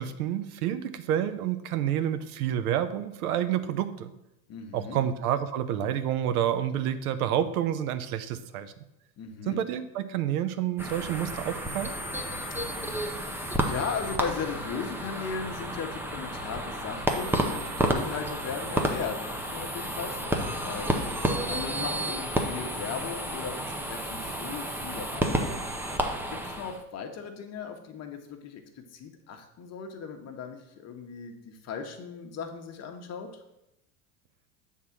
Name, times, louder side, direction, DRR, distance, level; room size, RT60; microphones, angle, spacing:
voice 1, 0.0-4.1 4.7-8.7 9.5-11.9, right 10 dB, 85° right, 11 dB, 0.7 m, -29 dB
voice 2, 4.5-5.0 9.2-9.6 13.6-25.6 26.3-33.3, left 6 dB, 35° left, 5 dB, 1.0 m, -37 dB
sound 1, 10.8-26.8, right 1 dB, 5° right, 0.5 m, -31 dB
6.5 x 3.7 x 5.8 m, 0.87 s
supercardioid pair, 115°, 43 cm